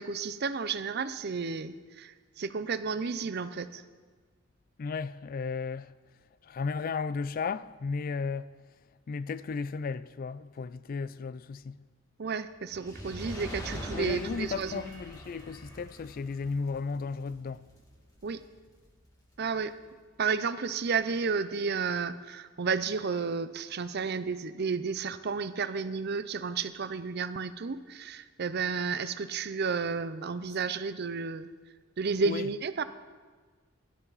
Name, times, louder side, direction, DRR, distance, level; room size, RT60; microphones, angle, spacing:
voice 1, 0.0-3.8 12.2-14.8 18.2-18.4 19.4-19.7 20.2-31.5 32.0-32.8, right 5 dB, 50° right, 0.5 m, -32 dB
voice 2, 4.8-5.9 6.4-8.6 9.1-11.8 13.7-17.7 32.2-32.5, left 5 dB, 45° left, 0.3 m, -34 dB
Fire, 12.6-19.1 19.7-19.8, equal, 20° left, 2.5 m, -43 dB
16.5 x 12.5 x 4.1 m
head